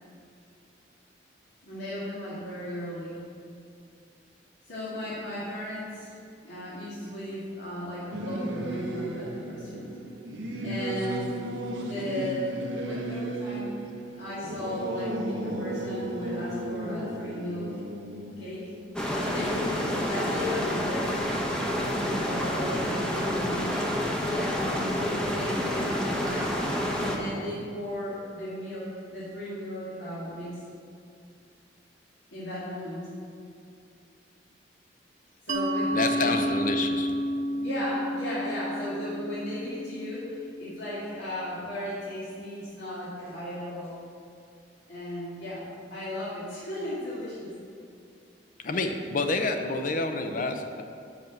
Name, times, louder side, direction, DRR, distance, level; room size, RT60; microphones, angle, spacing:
voice 1, 1.6-3.2 4.6-6.1 6.4-9.9 10.6-11.3 11.8-12.5 12.8-13.8 14.1-17.8 18.4-18.7 19.2-21.1 22.0-23.9 24.2-24.7 25.0-26.6 27.0-30.6 32.3-33.0 35.5-36.8 37.6-44.0 44.9-47.5, left 1 dB, 70° left, -10 dB, 2.1 m, -36 dB
Singing / Musical instrument, 8.1-20.0, right 1 dB, 90° right, 0.8 m, -35 dB
sound 1, 19.0-27.2, equal, 5° left, 0.8 m, -28 dB
Mallet percussion, 35.5-40.9, equal, 45° right, 0.5 m, -31 dB
voice 2, 35.9-37.1 48.6-50.8, left 3 dB, 45° left, 6 dB, 0.6 m, -28 dB
6.0 x 5.8 x 6.6 m, 2.4 s
head